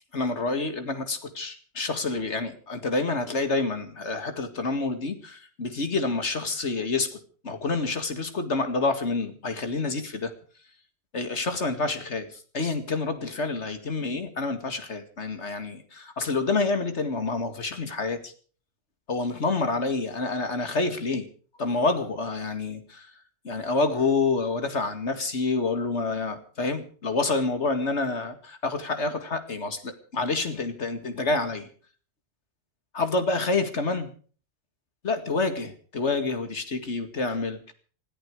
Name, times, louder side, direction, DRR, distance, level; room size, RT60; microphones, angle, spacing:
voice 1, 0.1-7.1 7.4-10.3 11.1-18.3 19.1-21.3 21.6-23.1 23.4-31.7 32.9-34.1 35.0-37.7, left 3 dB, 90° left, 9 dB, 2.4 m, -28 dB
20.5 x 14.0 x 4.8 m, 0.43 s
omnidirectional pair, 1.1 m